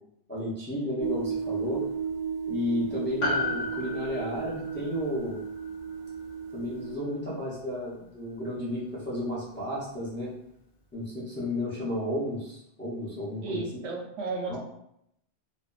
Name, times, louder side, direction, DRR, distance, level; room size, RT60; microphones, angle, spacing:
voice 1, 0.3-1.8 2.5-5.4 6.5-10.3 10.9-13.8 14.5-14.6, left 1 dB, 15° left, -6 dB, 0.4 m, -33 dB
sound 1, 1.0-7.0, right 6 dB, 65° right, 0.3 m, -34 dB
Piano, 3.2-8.1, left 3 dB, 85° left, 1.1 m, -35 dB
voice 2, 13.4-14.6, right 3 dB, 80° right, 0 dB, 0.9 m, -33 dB
2.6 x 2.1 x 2.3 m, 0.76 s
omnidirectional pair, 1.2 m